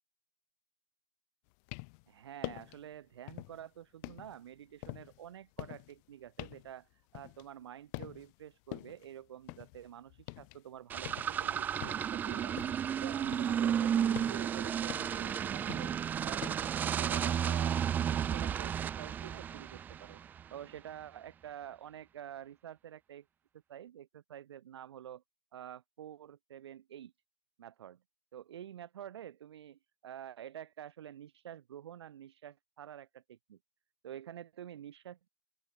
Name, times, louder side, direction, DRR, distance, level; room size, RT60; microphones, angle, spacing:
sound 1, 1.5-2.1 2.4-2.9 3.3-3.7 4.0-7.7 7.9-8.4 8.7-10.6 10.9-12.9 13.3-16.5, left 38 dB, 35° left, 1.0 m, -46 dB
voice 1, 2.1-12.6 13.0-15.9 16.2-20.2 20.5-23.2 23.7-25.2 25.5-27.1 27.6-28.0 28.3-33.6 34.0-35.3, right 10 dB, 60° right, 3.7 m, -48 dB
sound 2, 10.9-20.4, right 9 dB, 10° right, 0.4 m, -33 dB
open air
hypercardioid pair, 125°, 16 cm